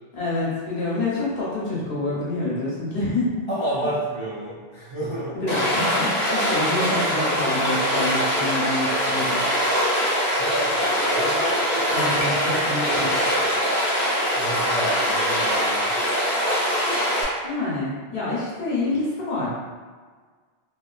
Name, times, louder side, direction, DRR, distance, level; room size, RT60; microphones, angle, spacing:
voice 1, 0.1-3.5 5.3-9.4 11.9-12.3 12.6-13.1 17.4-19.5, left 2 dB, 65° left, -7 dB, 1.0 m, -27 dB
voice 2, 3.5-5.4 10.3-13.4 14.2-15.9, right 1 dB, 45° right, -9 dB, 0.4 m, -31 dB
Stream, 5.5-17.2, equal, 25° left, 0.8 m, -23 dB
2.7 x 2.3 x 2.3 m, 1.5 s
omnidirectional pair, 1.0 m